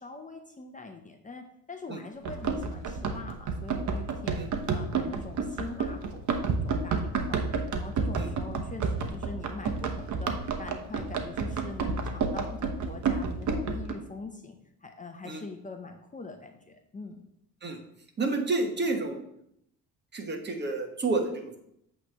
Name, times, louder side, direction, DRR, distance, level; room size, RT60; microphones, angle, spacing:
voice 1, 0.0-4.4 4.7-7.4 7.7-14.6 14.8-17.2, left 3 dB, 25° left, 5 dB, 0.8 m, -43 dB
Run, 2.2-13.9, right 4 dB, 60° right, 1.0 m, -30 dB
voice 2, 18.2-19.2 20.1-21.6, right 3 dB, 30° right, 4 dB, 1.3 m, -30 dB
8.1 x 3.3 x 6.5 m, 0.76 s
cardioid pair, 100°, 33 cm